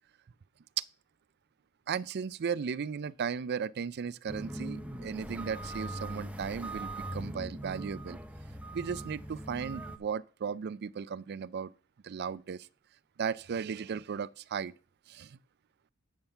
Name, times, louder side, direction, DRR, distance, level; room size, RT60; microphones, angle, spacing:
voice 1, 1.9-8.2 8.7-11.7 12.0-12.7 13.2-14.7 15.1-15.4, right 6 dB, 55° right, 0.4 m, -36 dB
sound 1, 4.3-10.0, right 1 dB, 5° right, 0.9 m, -41 dB
8.8 x 5.7 x 6.7 m
head